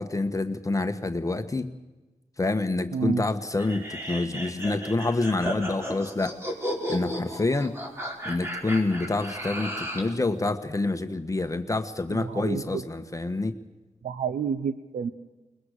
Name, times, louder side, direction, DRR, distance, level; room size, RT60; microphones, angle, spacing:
voice 1, 0.0-1.7 2.4-6.4 6.9-7.8 8.2-13.6, left 2 dB, 25° left, 8 dB, 1.3 m, -27 dB
voice 2, 2.9-3.2 12.2-12.8 14.0-15.1, right 6 dB, 85° right, 12 dB, 0.9 m, -29 dB
sound 1, 3.6-10.1, equal, 20° right, 5.1 m, -34 dB
22.0 x 21.5 x 6.7 m, 1.2 s
cardioid pair, 70°, 13 cm